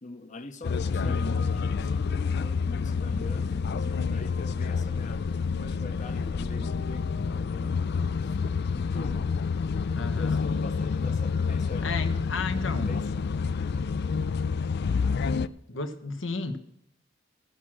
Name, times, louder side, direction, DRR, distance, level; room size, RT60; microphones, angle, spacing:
voice 1, 0.0-5.2 5.6-8.3 8.7-9.2 10.1-12.0 12.5-13.2, left 2 dB, 40° left, 0.9 m, -43 dB
sound 1, 0.6-15.5, left 5 dB, 60° left, 0.4 m, -28 dB
voice 2, 0.9-1.5 9.9-10.5 11.8-13.0 15.7-16.6, left 3 dB, 75° left, 1.2 m, -33 dB
16.0 x 6.1 x 6.2 m
head